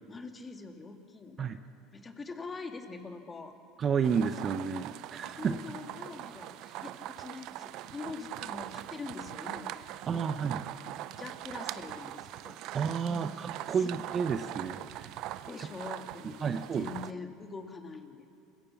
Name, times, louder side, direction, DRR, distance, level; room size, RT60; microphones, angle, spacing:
voice 1, 0.1-1.5 1.9-3.6 5.4-10.5 10.8-12.6 13.1-13.4 13.7-13.9 15.5-18.3, left 4 dB, 20° left, 5 dB, 1.9 m, -44 dB
voice 2, 3.8-5.5 10.1-10.6 12.7-15.1 15.6-15.7 16.2-16.9, right 6 dB, 35° right, 10 dB, 0.9 m, -31 dB
sound 1, 4.0-17.1, right 14 dB, 60° right, 0.6 m, -42 dB
26.5 x 16.0 x 7.3 m, 2.6 s
supercardioid pair, 115°, 0 cm